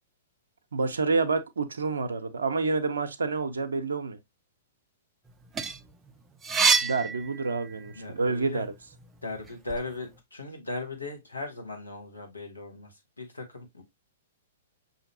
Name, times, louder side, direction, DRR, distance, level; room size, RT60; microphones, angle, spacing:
voice 1, 0.7-4.2 6.8-8.7, right 4 dB, 70° right, 0.5 m, -28 dB
sound 1, 5.3-8.0 8.4-9.8, right 5 dB, 15° right, 0.4 m, -28 dB
voice 2, 7.9-8.6 9.2-13.8, left 2 dB, 85° left, 1.2 m, -38 dB
5.7 x 2.7 x 2.7 m
figure-of-eight pair, 110°, 0 cm